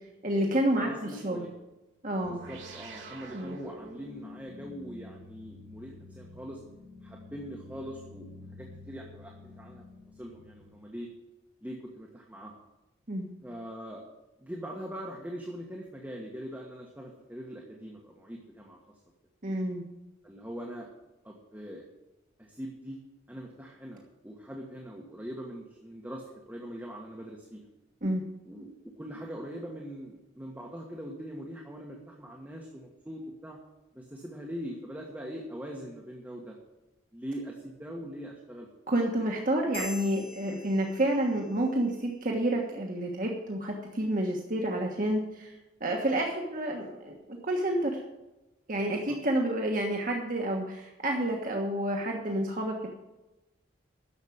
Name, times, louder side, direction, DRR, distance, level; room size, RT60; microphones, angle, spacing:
voice 1, 0.2-0.9 1.2-1.5 2.0-2.4 3.3-3.6 13.1-13.3 19.4-19.9 28.0-28.2 38.9-45.5 45.8-48.0 48.7-52.9, right 1 dB, 45° right, 0 dB, 1.4 m, -29 dB
voice 2, 0.8-1.5 2.2-6.6 7.0-9.8 10.2-11.1 11.6-12.5 13.4-14.0 14.4-18.8 20.2-20.9 21.2-21.9 22.4-23.0 23.3-27.6 28.4-33.6 33.9-36.6 37.1-38.7 48.9-49.2, equal, 10° right, -1 dB, 1.5 m, -42 dB
sound 1, 2.2-11.1, left 1 dB, 65° right, 2.5 m, -48 dB
sound 2, 39.7-41.6, left 3 dB, 30° left, 1.4 m, -45 dB
11.0 x 7.2 x 8.6 m, 1.0 s
head